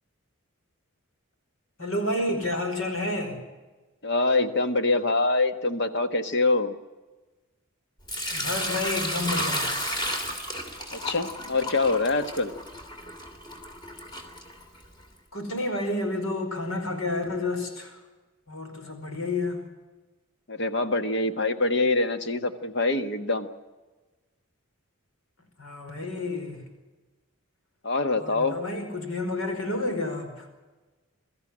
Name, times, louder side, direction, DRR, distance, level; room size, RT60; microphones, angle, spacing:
voice 1, 1.8-3.4 8.3-9.7 15.3-18.0 18.5-19.6 25.6-26.6 28.2-30.5, left 2 dB, 80° left, 5 dB, 5.0 m, -30 dB
voice 2, 4.0-6.8 10.9-12.5 20.5-23.5 27.8-28.6, left 3 dB, 55° left, 8 dB, 1.5 m, -25 dB
Sink (filling or washing) / Liquid, 8.1-15.0, equal, 20° left, 3.1 m, -32 dB
23.5 x 14.0 x 10.0 m, 1.2 s
head